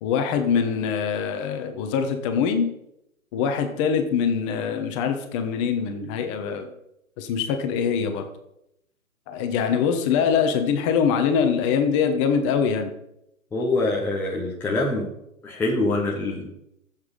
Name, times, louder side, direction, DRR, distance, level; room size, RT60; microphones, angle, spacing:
voice 1, 0.0-2.7 3.3-6.7 7.2-8.2 9.3-12.9, left 6 dB, 20° left, 7 dB, 1.2 m, -23 dB
voice 2, 13.5-15.1 15.4-16.5, left 2 dB, 5° left, -3 dB, 0.9 m, -24 dB
13.5 x 7.5 x 5.3 m, 0.81 s
figure-of-eight pair, 125°, 42 cm